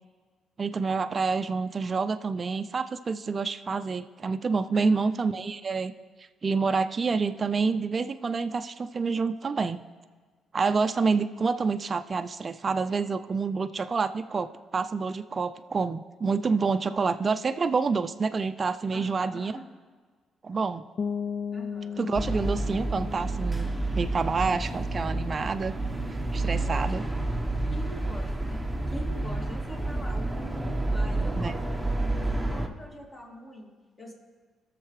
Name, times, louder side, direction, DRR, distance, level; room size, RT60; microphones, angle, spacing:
voice 1, 0.6-5.9 6.2-9.8 10.5-19.6 20.4-20.8 22.0-23.7 23.9-25.7 26.3-27.0 31.3-31.5, right 4 dB, 35° right, 8 dB, 0.4 m, -28 dB
voice 2, 4.7-5.2 18.9-19.6 21.5-22.1 26.4-27.1 27.7-30.4 30.8-32.0 32.5-34.1, left 1 dB, 30° left, 0 dB, 2.1 m, -43 dB
sound 1, 21.0-26.6, left 6 dB, 55° left, 0.3 m, -38 dB
sound 2, 22.2-32.7, right 2 dB, 5° right, 0.9 m, -29 dB
20.0 x 6.7 x 3.2 m, 1.5 s
cardioid pair, 90°, 0 cm